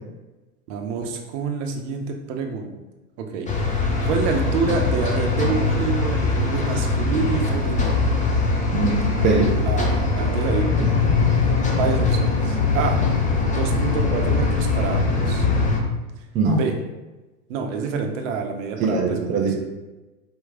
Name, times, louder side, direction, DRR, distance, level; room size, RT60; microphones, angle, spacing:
voice 1, 0.7-2.7 3.2-8.1 9.6-10.7 11.6-13.0 13.4-15.5 16.5-16.7 17.5-19.5, right 5 dB, 50° right, 3 dB, 0.9 m, -27 dB
sound 1, 3.5-15.8, left 3 dB, 15° left, 0.7 m, -21 dB
voice 2, 8.7-9.5 10.8-10.9 16.3-16.6 18.8-19.6, right 4 dB, 20° right, -1 dB, 0.4 m, -21 dB
4.6 x 3.0 x 3.6 m, 1.1 s
hypercardioid pair, 95°, 47 cm